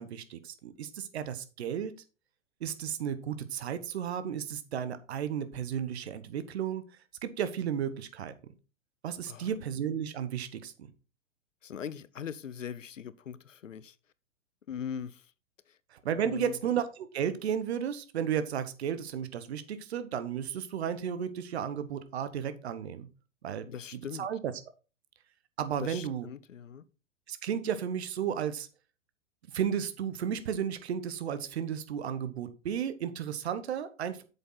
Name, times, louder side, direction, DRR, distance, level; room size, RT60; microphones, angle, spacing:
voice 1, 0.0-1.9 2.6-6.8 7.2-8.3 9.0-10.7 15.9-16.8 17.1-23.1 23.4-23.7 24.2-24.4 25.6-26.3 27.3-28.7 29.5-34.2, right 8 dB, 55° right, 1.3 m, -33 dB
voice 2, 11.6-14.0 14.7-15.3 15.7-15.8 16.2-16.6 23.7-24.3 25.8-26.8, left 8 dB, 75° left, 0.8 m, -40 dB
8.5 x 7.0 x 3.9 m
figure-of-eight pair, 105°, 39 cm